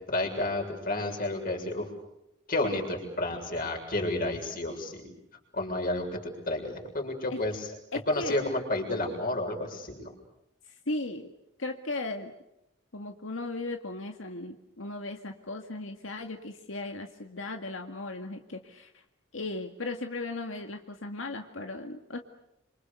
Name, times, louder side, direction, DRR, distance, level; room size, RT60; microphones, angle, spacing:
voice 1, 0.1-1.9 2.5-5.1 5.5-7.7 8.1-10.1, left 2 dB, 45° left, 2 dB, 7.1 m, -31 dB
voice 2, 7.9-8.5 10.7-11.3 11.6-12.3 12.9-19.0 19.3-22.2, left 2 dB, 85° left, 4 dB, 2.1 m, -37 dB
28.5 x 27.0 x 6.9 m, 0.85 s
head